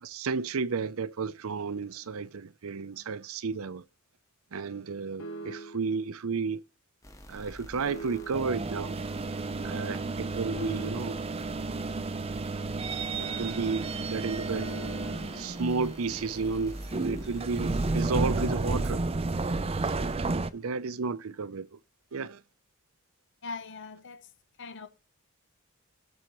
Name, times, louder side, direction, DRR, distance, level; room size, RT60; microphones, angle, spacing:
voice 1, 0.0-3.8 4.5-6.6 7.3-9.0 9.6-11.2 13.4-14.7 15.3-19.0 19.8-21.8 22.1-22.4, right 4 dB, 70° right, 0.6 m, -32 dB
sound 1, 5.2-6.0 7.9-8.7 10.5-11.4 13.2-15.9, right 1 dB, 75° left, 2.9 m, -44 dB
sound 2, 7.0-19.0, equal, 15° left, 1.2 m, -48 dB
sound 3, 8.3-20.5, right 3 dB, 25° right, 0.5 m, -32 dB
voice 2, 23.4-24.3 24.6-24.9, left 4 dB, 60° left, 0.9 m, -41 dB
17.5 x 7.1 x 3.1 m
head